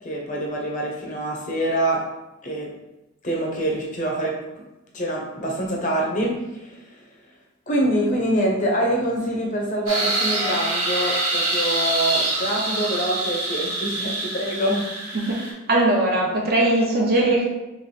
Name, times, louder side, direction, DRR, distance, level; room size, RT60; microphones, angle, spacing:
voice 1, 0.0-2.0 2.4-2.7 3.2-4.3 4.9-7.0 7.7-14.9, right 1 dB, 35° left, -1 dB, 0.7 m, -25 dB
sound 1, 9.9-15.5, right 2 dB, 75° right, 1.4 m, -25 dB
voice 2, 15.1-17.5, right 1 dB, 45° right, -2 dB, 0.8 m, -20 dB
3.2 x 3.0 x 4.1 m, 0.99 s
head